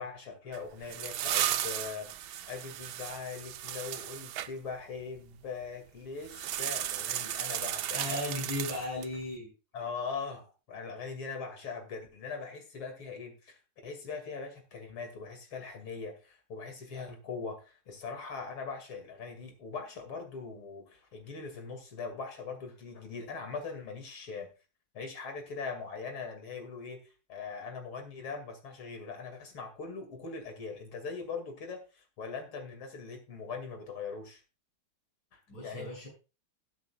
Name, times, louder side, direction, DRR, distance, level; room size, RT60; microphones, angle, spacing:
voice 1, 0.0-2.1 2.5-8.2 9.7-24.5 24.9-27.0 27.3-34.4 35.3-35.9, left 5 dB, 80° left, 5 dB, 3.2 m, -41 dB
sound 1, 0.5-4.5 6.2-9.2, right 11 dB, 70° right, 1.1 m, -35 dB
voice 2, 7.9-9.5 35.5-36.1, left 1 dB, 60° left, -3 dB, 7.7 m, -36 dB
20.0 x 8.3 x 2.4 m, 0.31 s
omnidirectional pair, 2.3 m